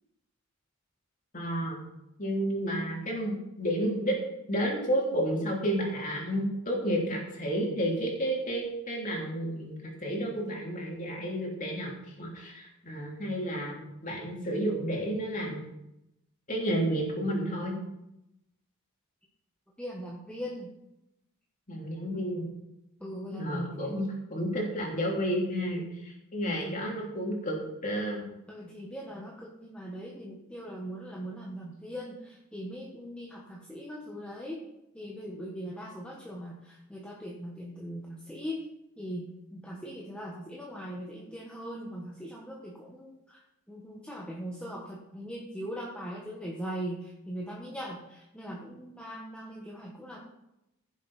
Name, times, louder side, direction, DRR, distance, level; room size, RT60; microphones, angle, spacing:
voice 1, 1.3-1.8 2.2-4.1 4.5-11.9 12.2-15.6 16.5-17.8 21.7-22.5 23.3-28.3, equal, 35° left, -2 dB, 3.1 m, -31 dB
voice 2, 19.8-20.7 23.0-24.0 26.4-26.9 28.5-34.6 34.9-38.6 39.0-43.4 43.7-50.2, equal, 5° left, -4 dB, 1.3 m, -40 dB
15.5 x 7.3 x 4.3 m, 0.87 s
head